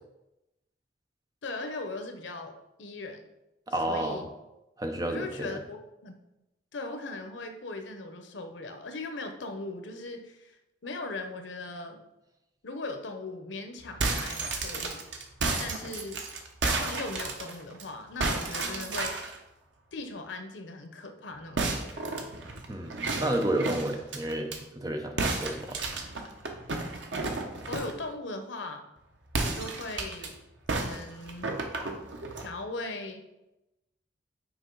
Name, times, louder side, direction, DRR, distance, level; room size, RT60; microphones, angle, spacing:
voice 1, 1.4-3.2 3.9-4.3 5.1-5.8 6.0-6.2 6.7-12.0 12.6-15.0 15.6-16.2 16.6-19.2 19.9-22.1 27.7-28.8 29.4-30.4 30.7-31.5 32.4-33.2, left 2 dB, 90° left, 6 dB, 0.8 m, -39 dB
voice 2, 3.7-4.3 4.8-5.6 22.7-25.8, right 1 dB, 20° right, 4 dB, 0.6 m, -31 dB
sound 1, 13.8-17.8 18.2-19.4 21.5-24.6 25.2-28.0 29.3-30.3 30.7-32.5, right 3 dB, 85° right, 0.9 m, -32 dB
6.1 x 4.6 x 3.9 m, 0.94 s
head